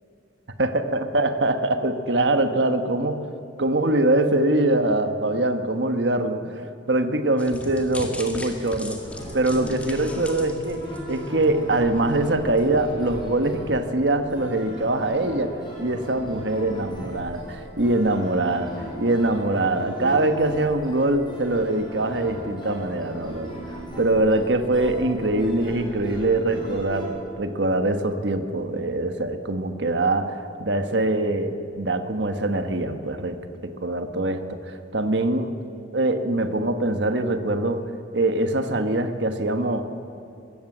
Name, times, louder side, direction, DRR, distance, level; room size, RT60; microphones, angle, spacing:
voice 1, 0.6-3.3 3.6-9.0 9.3-23.6 24.0-33.4 33.8-35.6 35.9-39.9, right 2 dB, 65° right, 8 dB, 1.4 m, -23 dB
sound 1, 7.4-11.6 12.0-12.1 12.6-12.7, left 1 dB, 5° left, 2.0 m, -38 dB
sound 2, 8.9-27.1, equal, 25° left, 5.9 m, -37 dB
22.5 x 16.0 x 7.4 m, 2.7 s
head